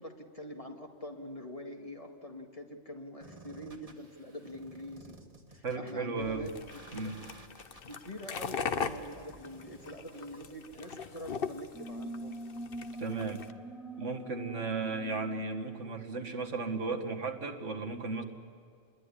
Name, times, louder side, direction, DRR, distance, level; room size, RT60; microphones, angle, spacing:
voice 1, 0.0-5.2 5.5-6.5 6.9-7.1 7.9-12.4, equal, 30° left, 3 dB, 2.1 m, -45 dB
sound 1, 3.2-11.2, right 2 dB, 30° right, 1.9 m, -54 dB
voice 2, 5.6-6.5 6.9-7.2 13.0-13.4 14.0-18.2, right 3 dB, 75° right, 6 dB, 2.0 m, -35 dB
sound 2, 6.5-13.5, left 6 dB, 50° left, 1.1 m, -39 dB
sound 3, 11.7-16.9, right 2 dB, ahead, 1.1 m, -44 dB
28.0 x 21.0 x 9.9 m, 2.3 s
omnidirectional pair, 1.3 m